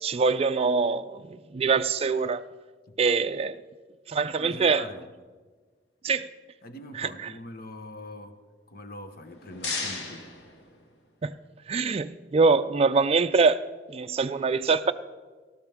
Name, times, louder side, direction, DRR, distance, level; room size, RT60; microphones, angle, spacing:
voice 1, 0.0-2.4 3.0-3.6 4.1-4.8 6.0-6.3 7.0-7.3 11.2-11.3 11.7-13.6 13.9-14.9, right 4 dB, 35° right, 0.4 m, -24 dB
voice 2, 4.4-5.1 6.6-8.4 8.7-10.3, left 1 dB, 55° left, 1.2 m, -42 dB
sound 1, 9.1-11.3, left 3 dB, 70° left, 2.1 m, -36 dB
18.5 x 13.0 x 3.6 m
head